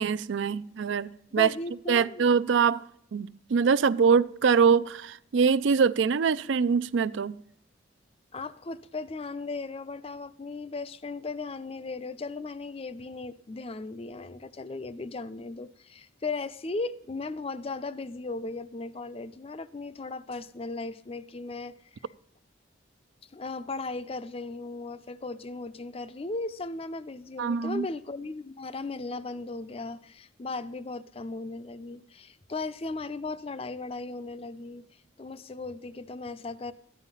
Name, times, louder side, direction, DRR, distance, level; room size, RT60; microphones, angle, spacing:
voice 1, 0.0-1.5 1.9-2.8 3.1-7.4 27.4-27.9, right 6 dB, 70° right, 0.4 m, -24 dB
voice 2, 1.3-2.3 8.3-21.7 22.0-22.1 23.3-34.9 35.2-36.7, left 3 dB, 30° left, 0.5 m, -37 dB
13.5 x 9.9 x 5.5 m
head